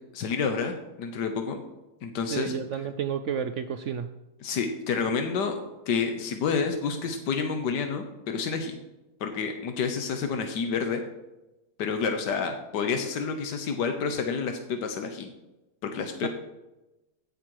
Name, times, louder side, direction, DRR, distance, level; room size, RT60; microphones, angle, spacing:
voice 1, 0.1-1.6 2.0-2.6 4.4-5.5 5.9-8.8 9.2-11.0 11.8-15.3 15.8-16.3, left 5 dB, 85° left, 6 dB, 1.6 m, -29 dB
voice 2, 2.3-4.1 16.2-16.3, right 7 dB, 70° right, 9 dB, 0.7 m, -31 dB
16.0 x 6.7 x 4.7 m, 1.0 s
omnidirectional pair, 1.8 m